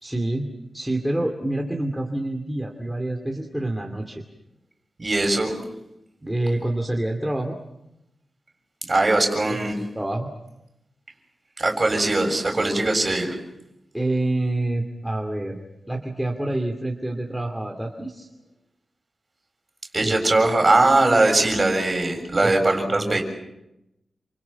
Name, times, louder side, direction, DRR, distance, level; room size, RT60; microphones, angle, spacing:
voice 1, 0.0-4.2 6.2-7.6 9.5-10.3 13.9-15.6 15.9-18.3 20.0-20.2 22.4-22.6 22.9-23.2, right 1 dB, 5° right, 2 dB, 2.6 m, -27 dB
voice 2, 5.0-5.6 6.2-6.3 8.9-9.7 11.6-13.4 19.9-23.2, right 2 dB, 25° right, 3 dB, 7.2 m, -20 dB
29.5 x 27.5 x 5.9 m, 0.87 s
wide cardioid pair, 150°, 0 cm